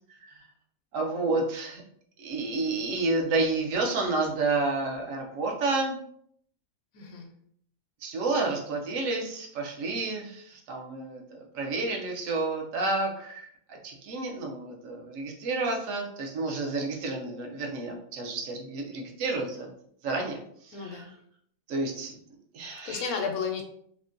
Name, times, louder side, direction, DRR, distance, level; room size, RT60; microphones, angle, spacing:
voice 1, 0.9-1.8 2.2-6.0 8.0-19.7 20.0-21.1 21.7-22.1 22.5-23.1, right 3 dB, 65° right, 1 dB, 1.0 m, -30 dB
voice 2, 6.9-7.3 20.7-21.1 22.8-23.6, left 6 dB, 90° left, 3 dB, 1.1 m, -32 dB
3.6 x 2.1 x 2.5 m, 0.66 s
omnidirectional pair, 1.5 m